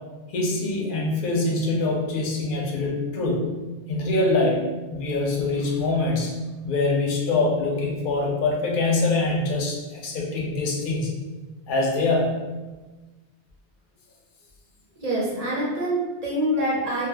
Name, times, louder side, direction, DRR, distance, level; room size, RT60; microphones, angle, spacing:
voice 1, 0.3-3.5 3.9-4.6 4.9-6.3 6.6-11.1 11.7-12.4, left 2 dB, 60° left, -1 dB, 0.6 m, -24 dB
voice 2, 15.0-17.1, right 1 dB, 50° right, -5 dB, 0.5 m, -25 dB
2.2 x 2.0 x 3.3 m, 1.2 s
omnidirectional pair, 1.1 m